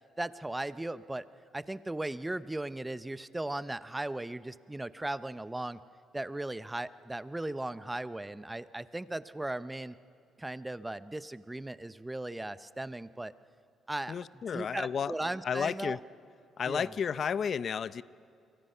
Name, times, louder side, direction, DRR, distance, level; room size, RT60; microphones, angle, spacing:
voice 1, 0.2-1.3 1.5-5.8 6.1-10.0 10.4-13.3 13.9-14.1 14.5-16.0 16.7-16.9, right 1 dB, 10° right, 14 dB, 0.7 m, -37 dB
voice 2, 14.1-15.1 15.4-16.0 16.6-18.0, left 7 dB, 55° left, 17 dB, 0.6 m, -32 dB
29.5 x 24.0 x 5.6 m, 2.4 s
cardioid pair, 90°, 0 cm